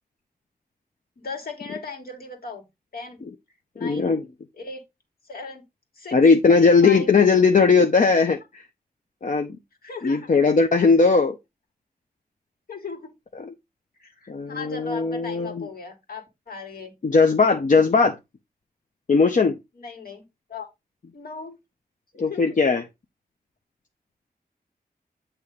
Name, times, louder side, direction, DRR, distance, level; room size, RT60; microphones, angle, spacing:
voice 1, 1.2-2.6 2.9-3.2 3.7-4.1 4.5-4.8 5.2-5.6 6.0-6.2 6.8-7.1 9.8-10.3 12.7-13.1 14.0-16.9 19.8-20.2 20.5-20.7 21.1-21.6 22.1-22.6, left 4 dB, 65° left, 2.0 m, -37 dB
voice 2, 3.8-4.2 6.1-8.6 9.2-9.5 10.0-11.3 13.4-13.5 14.3-15.7 17.0-18.1 19.1-19.5 22.2-22.8, left 4 dB, 50° left, 0.7 m, -18 dB
8.1 x 3.0 x 4.9 m
wide cardioid pair, 105°, 16 cm